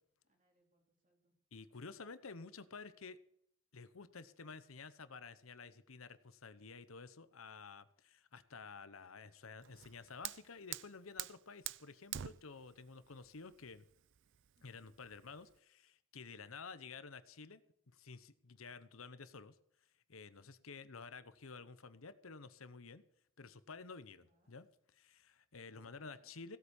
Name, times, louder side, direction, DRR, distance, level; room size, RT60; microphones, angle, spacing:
voice 1, 0.2-1.3 14.5-14.9 24.2-24.6 25.7-26.3, right 1 dB, 40° right, 2 dB, 3.6 m, -75 dB
voice 2, 1.5-3.2 3.7-13.8 14.6-17.6 17.9-19.6 20.1-23.0 23.4-24.7 25.0-26.6, left 4 dB, 85° left, 13 dB, 1.0 m, -52 dB
Fire, 9.6-15.6, right 12 dB, 65° right, 0.5 m, -48 dB
16.5 x 8.2 x 7.2 m, 0.71 s
head